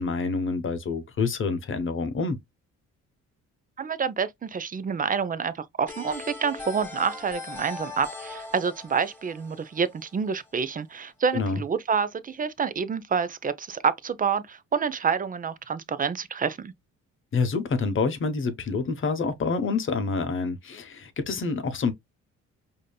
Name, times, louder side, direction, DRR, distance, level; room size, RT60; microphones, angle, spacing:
voice 1, 0.0-2.4 11.3-11.6 17.3-21.9, left 4 dB, 40° left, 0.8 m, -27 dB
voice 2, 3.8-16.7, right 6 dB, 30° right, 0.5 m, -28 dB
sound 1, 5.9-10.5, left 3 dB, 5° left, 1.4 m, -40 dB
5.0 x 2.7 x 2.2 m
cardioid pair, 90°, 30 cm